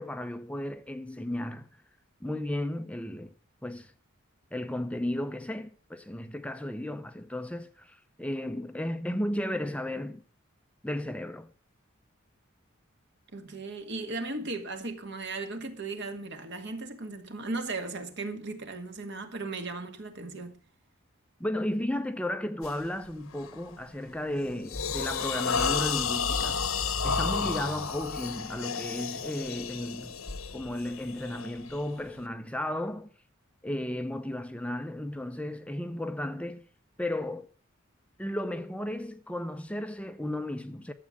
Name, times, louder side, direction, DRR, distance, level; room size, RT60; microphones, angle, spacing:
voice 1, 0.0-1.7 2.2-3.3 3.6-3.9 4.5-10.2 10.8-11.5 21.4-30.2 30.5-33.1 33.6-36.7 37.0-37.5 38.2-40.9, left 1 dB, 5° left, 0.6 m, -34 dB
voice 2, 13.3-20.5, right 3 dB, 55° right, 2.0 m, -36 dB
sound 1, 22.6-22.9 23.3-23.6 24.1-32.2, left 6 dB, 80° left, 1.2 m, -32 dB
12.5 x 7.5 x 7.3 m
head